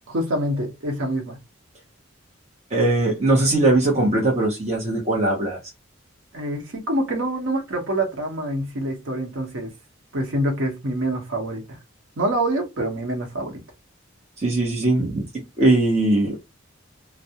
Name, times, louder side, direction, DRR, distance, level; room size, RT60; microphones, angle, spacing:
voice 1, 0.1-1.4 6.3-9.7 10.1-11.8 12.2-13.6, right 1 dB, 70° right, 0.8 m, -26 dB
voice 2, 2.7-5.6 14.4-15.2 15.6-16.5, right 2 dB, 35° right, 0.7 m, -20 dB
2.3 x 2.0 x 2.7 m
head